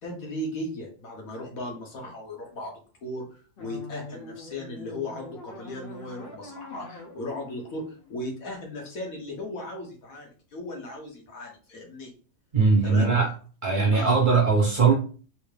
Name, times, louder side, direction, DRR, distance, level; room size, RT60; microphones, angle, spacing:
voice 1, 0.0-2.7 3.0-12.1 12.8-13.1 13.9-14.2, left 1 dB, 70° left, 0 dB, 1.5 m, -37 dB
sound 1, 3.6-8.7, left 2 dB, 45° left, 0.9 m, -44 dB
voice 2, 12.5-13.3 13.6-14.9, right 4 dB, 40° right, -3 dB, 1.1 m, -20 dB
3.6 x 2.7 x 3.2 m, 0.39 s
omnidirectional pair, 1.5 m